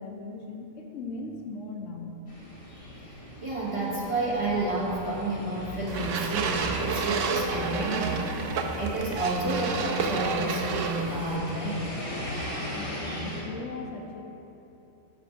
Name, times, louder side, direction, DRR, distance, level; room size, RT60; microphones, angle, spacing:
voice 1, 0.0-2.2 12.6-14.2, left 3 dB, 70° left, 2 dB, 0.9 m, -39 dB
sound 1, 2.3-13.4, left 1 dB, 25° left, 1.2 m, -37 dB
voice 2, 3.4-11.9, right 2 dB, 25° right, -6 dB, 1.0 m, -30 dB
sound 2, 5.9-11.4, right 5 dB, 70° right, 0.9 m, -30 dB
6.0 x 5.7 x 5.7 m, 3.0 s
omnidirectional pair, 1.4 m